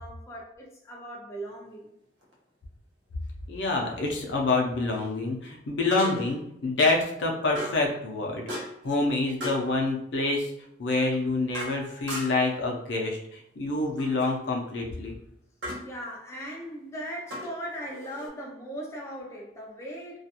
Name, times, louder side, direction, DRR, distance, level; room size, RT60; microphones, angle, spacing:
voice 1, 0.0-1.9 15.8-20.2, equal, 15° left, -2 dB, 0.4 m, -39 dB
sound 1, 2.2-2.3 5.9-6.4 7.5-7.9 8.5-8.9 9.4-9.7 10.9-12.5 14.0-14.3 15.6-15.9 17.3-18.3, equal, 85° right, 0.7 m, -37 dB
voice 2, 3.5-10.5 10.8-15.1, left 3 dB, 85° left, 0 dB, 0.5 m, -27 dB
2.4 x 2.2 x 2.8 m, 0.74 s
head